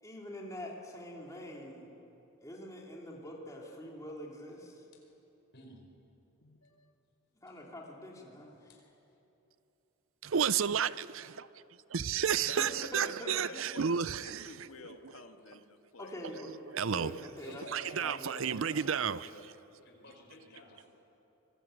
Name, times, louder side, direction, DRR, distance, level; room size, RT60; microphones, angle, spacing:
voice 1, 0.0-1.9 2.4-4.8 7.3-8.8 10.6-10.7 12.4-13.4 16.0-16.6 16.9-18.3, equal, 15° left, 3.2 m, -45 dB
voice 2, 5.5-5.8 8.6-8.8 17.4-20.9, left 1 dB, 50° left, 4.9 m, -52 dB
voice 3, 6.4-7.0 12.4-13.9 14.2-16.2, left 2 dB, 75° left, 2.0 m, -50 dB
voice 4, 10.2-11.5 11.9-14.4 16.7-17.1 17.7-19.2, right 7 dB, 65° right, 0.6 m, -31 dB
26.5 x 20.5 x 9.0 m
head